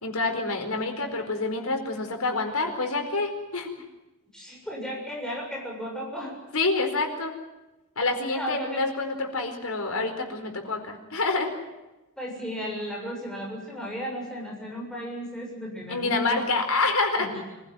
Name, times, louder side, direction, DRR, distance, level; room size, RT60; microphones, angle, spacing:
voice 1, 0.0-3.7 6.5-7.3 8.0-11.5 15.9-17.3, left 3 dB, 80° left, 5 dB, 4.6 m, -27 dB
voice 2, 4.3-6.4 8.3-8.8 12.2-16.4 17.2-17.3, equal, 5° left, -2 dB, 7.3 m, -34 dB
25.0 x 16.0 x 9.1 m, 1.1 s
head